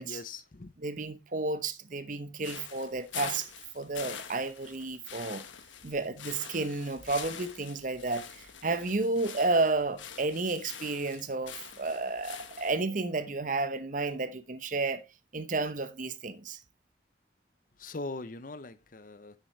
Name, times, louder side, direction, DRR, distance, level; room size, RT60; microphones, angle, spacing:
voice 1, 0.0-0.7 17.8-19.4, left 2 dB, 45° left, 0.7 m, -41 dB
voice 2, 0.8-5.4 5.8-15.0 15.3-16.6, right 3 dB, 45° right, 0.9 m, -32 dB
sound 1, 2.4-12.8, left 8 dB, 90° left, 1.3 m, -45 dB
10.0 x 7.9 x 3.2 m
head